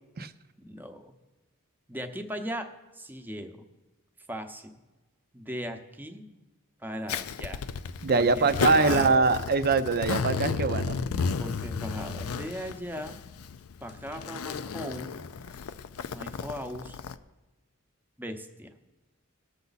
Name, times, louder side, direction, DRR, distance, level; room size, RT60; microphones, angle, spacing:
voice 1, 0.6-1.1 1.9-3.6 4.3-4.7 5.3-6.3 6.8-7.7 8.1-9.3 11.4-13.2 13.8-15.2 16.1-17.0 18.2-18.7, equal, 10° right, 6 dB, 0.8 m, -38 dB
Zipper (clothing), 7.1-17.2, left 5 dB, 70° left, 0.5 m, -33 dB
voice 2, 8.0-11.2, right 4 dB, 45° right, 11 dB, 0.6 m, -23 dB
18.0 x 7.0 x 4.0 m, 1.1 s
head